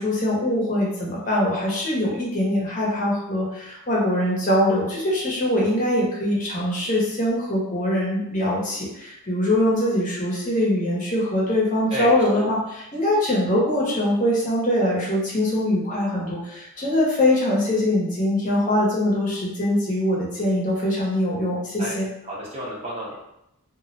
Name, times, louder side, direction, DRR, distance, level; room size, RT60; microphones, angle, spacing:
voice 1, 0.0-22.1, left 1 dB, 35° left, -4 dB, 0.7 m, -23 dB
voice 2, 11.9-12.6 21.8-21.9 22.2-23.3, equal, 25° right, -5 dB, 0.6 m, -32 dB
2.3 x 2.1 x 3.8 m, 0.84 s
head